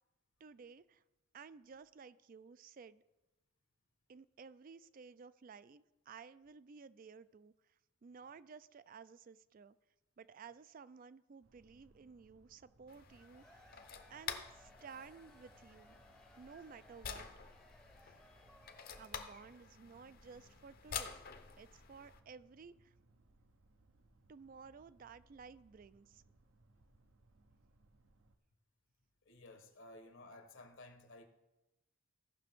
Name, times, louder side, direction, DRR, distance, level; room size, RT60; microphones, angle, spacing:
voice 1, 0.4-1.0 1.3-3.0 4.1-7.5 8.0-9.7 10.2-13.7 14.1-16.0 16.4-17.3 19.0-21.1 21.6-22.9 24.3-26.2, right 5 dB, 40° right, 0.3 m, -55 dB
sound 1, 11.4-28.4, right 2 dB, 65° right, 0.7 m, -69 dB
sound 2, 12.9-22.2, left 7 dB, 45° left, 0.7 m, -49 dB
Cheering / Crowd, 13.1-19.8, equal, ahead, 0.7 m, -64 dB
voice 2, 29.2-31.3, left 2 dB, 65° left, 1.1 m, -55 dB
16.0 x 6.0 x 3.6 m
head